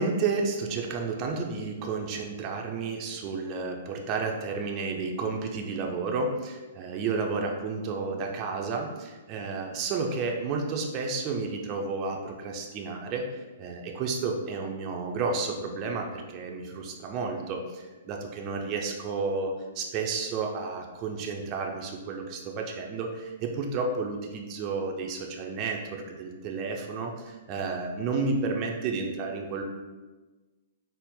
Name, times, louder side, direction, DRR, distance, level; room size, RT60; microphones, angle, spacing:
voice 1, 0.0-29.6, right 4 dB, 35° right, 1 dB, 0.4 m, -31 dB
4.0 x 2.1 x 3.7 m, 1.2 s
hypercardioid pair, 125°, 0 cm